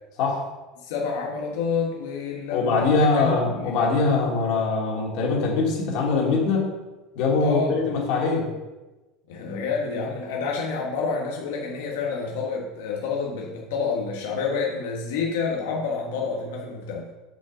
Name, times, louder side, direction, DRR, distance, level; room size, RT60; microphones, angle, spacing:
voice 1, 0.8-3.7 7.4-7.7 9.3-17.1, left 5 dB, 90° left, -2 dB, 1.6 m, -28 dB
voice 2, 2.5-6.8 7.1-8.5, left 4 dB, 50° left, -2 dB, 2.8 m, -22 dB
7.9 x 5.5 x 6.3 m, 1.1 s
cardioid pair, 170°, 0 cm